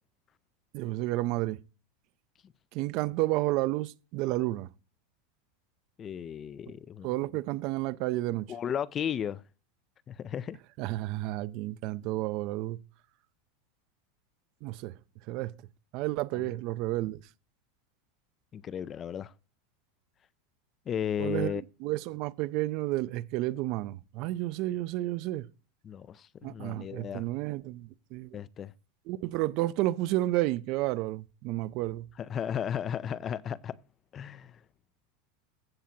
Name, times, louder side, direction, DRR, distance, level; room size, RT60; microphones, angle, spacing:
voice 1, 0.7-1.6 2.7-4.7 7.0-8.5 10.8-12.8 14.6-14.9 15.3-15.5 15.9-17.2 21.2-25.5 26.4-28.4 29.1-32.1, right 17 dB, 50° right, 0.5 m, -31 dB
voice 2, 6.0-7.1 8.5-9.4 10.1-10.6 16.3-16.5 18.5-19.3 20.9-21.6 25.8-27.3 28.3-28.7 32.2-33.8 34.1-34.6, left 9 dB, 30° left, 0.4 m, -34 dB
15.5 x 7.4 x 2.8 m
supercardioid pair, 135°, 0 cm